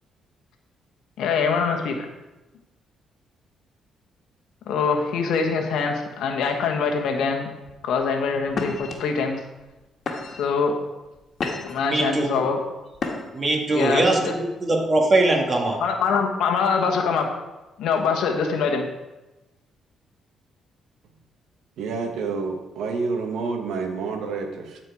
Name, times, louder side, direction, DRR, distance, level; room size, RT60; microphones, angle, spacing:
voice 1, 1.2-2.1 4.7-7.5 7.8-9.4 10.3-10.8 11.6-12.6 13.7-14.3 15.8-17.4 17.8-18.9, left 5 dB, 80° left, 3 dB, 1.2 m, -24 dB
sound 1, 7.7-7.9 8.5-8.9 9.6-9.7 10.1-10.5 11.1-11.9 12.9-13.5, left 4 dB, 55° left, 1.6 m, -30 dB
voice 2, 11.8-12.4 13.3-15.8, right 2 dB, 35° right, 1 dB, 1.9 m, -21 dB
voice 3, 21.8-24.8, right 4 dB, 80° right, 5 dB, 1.3 m, -28 dB
12.5 x 4.5 x 4.8 m, 1.1 s
cardioid pair, 90°, 0 cm